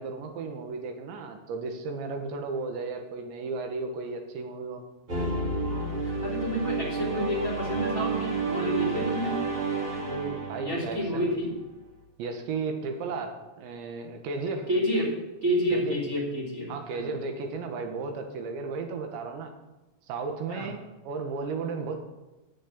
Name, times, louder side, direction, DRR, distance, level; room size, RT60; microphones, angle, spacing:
voice 1, 0.0-4.8 10.5-11.3 12.2-14.7 15.7-16.0 16.7-19.5 20.1-22.0, right 4 dB, 70° right, 5 dB, 3.5 m, -34 dB
sound 1, 5.1-11.5, right 3 dB, 45° right, 1.7 m, -30 dB
voice 2, 5.7-9.4 10.0-11.5 14.7-15.1 15.4-17.1 20.5-20.7, equal, 20° right, -3 dB, 2.3 m, -30 dB
13.5 x 6.6 x 8.6 m, 1.1 s
omnidirectional pair, 5.9 m